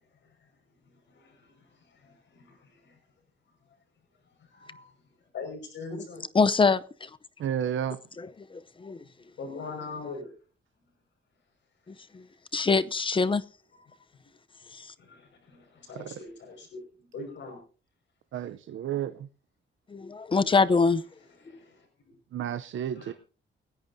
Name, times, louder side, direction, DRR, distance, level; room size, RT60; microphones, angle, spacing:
voice 1, 0.8-3.0 4.4-6.3 9.0-9.1 9.4-10.3 13.9-14.0 15.0-17.6 21.4-21.9 22.9-23.1, left 3 dB, 65° left, 5.7 m, -43 dB
voice 2, 6.3-7.1 8.2-9.0 12.1-12.2 12.5-13.4 14.8-14.9 19.9-21.0, left 4 dB, 25° left, 0.7 m, -24 dB
voice 3, 7.4-8.0 16.0-16.1 18.3-19.1 22.3-23.1, right 9 dB, 75° right, 0.7 m, -31 dB
29.5 x 11.0 x 2.7 m
wide cardioid pair, 150°, 20 cm